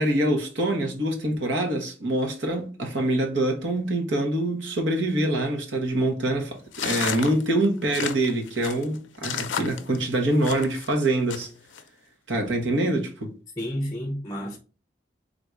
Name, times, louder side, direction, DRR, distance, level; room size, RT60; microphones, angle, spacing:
voice 1, 0.0-11.5 12.3-13.3, right 1 dB, 85° right, 1.2 m, -25 dB
sound 1, 6.7-10.9 11.3-11.8, left 7 dB, 90° left, 0.5 m, -32 dB
voice 2, 13.6-14.6, equal, 20° left, 0.5 m, -31 dB
3.8 x 2.6 x 4.6 m
head